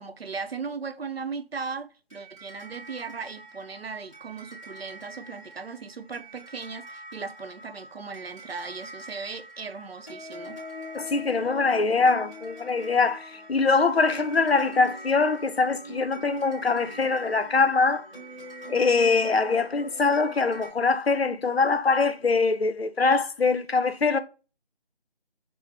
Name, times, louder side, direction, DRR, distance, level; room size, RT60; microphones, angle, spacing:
voice 1, 0.0-10.6, right 5 dB, 75° right, 0.7 m, -37 dB
sound 1, 2.1-20.7, right 1 dB, 5° right, 0.9 m, -43 dB
voice 2, 10.9-18.0 18.7-24.2, left 4 dB, 80° left, 0.6 m, -23 dB
6.1 x 2.1 x 2.8 m
figure-of-eight pair, 165°, 31 cm